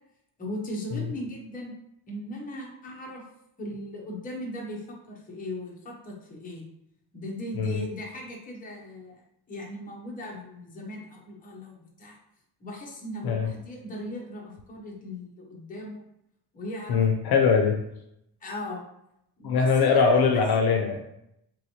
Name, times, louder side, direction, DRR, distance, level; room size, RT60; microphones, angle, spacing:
voice 1, 0.4-1.8 2.1-3.2 3.6-6.6 7.1-9.2 9.5-12.2 12.6-16.0 16.5-17.0 18.4-18.8 19.4-20.2, left 1 dB, 20° left, -2 dB, 0.7 m, -38 dB
voice 2, 16.9-17.8 19.4-21.0, left 5 dB, 60° left, 3 dB, 0.5 m, -22 dB
3.3 x 3.1 x 2.7 m, 0.79 s
cardioid pair, 165°, 42 cm